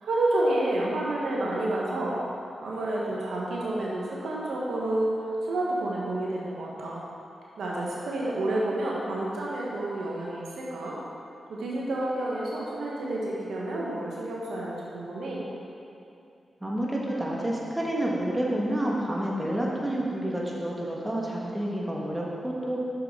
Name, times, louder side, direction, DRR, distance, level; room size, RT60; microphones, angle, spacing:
voice 1, 0.0-2.2 2.6-7.0 7.6-11.0 11.5-15.4, right 1 dB, 85° right, -5 dB, 1.2 m, -29 dB
voice 2, 16.6-22.8, right 1 dB, 15° right, -4 dB, 1.7 m, -29 dB
7.7 x 6.5 x 3.8 m, 2.6 s
supercardioid pair, 45°, 0 cm